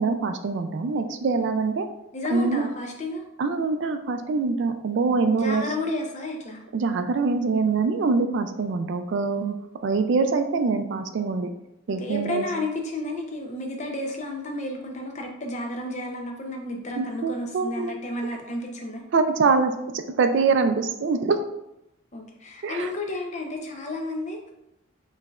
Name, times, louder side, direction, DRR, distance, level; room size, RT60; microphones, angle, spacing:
voice 1, 0.0-1.9 2.3-2.6 3.4-5.6 6.7-9.6 9.8-11.5 11.9-12.4 17.0-17.9 19.1-21.4 22.6-22.9, right 4 dB, 55° right, 8 dB, 0.3 m, -24 dB
voice 2, 2.1-3.2 5.3-6.6 12.0-19.0 22.1-24.5, left 2 dB, 35° left, 2 dB, 0.6 m, -32 dB
4.8 x 3.2 x 2.3 m, 0.86 s
head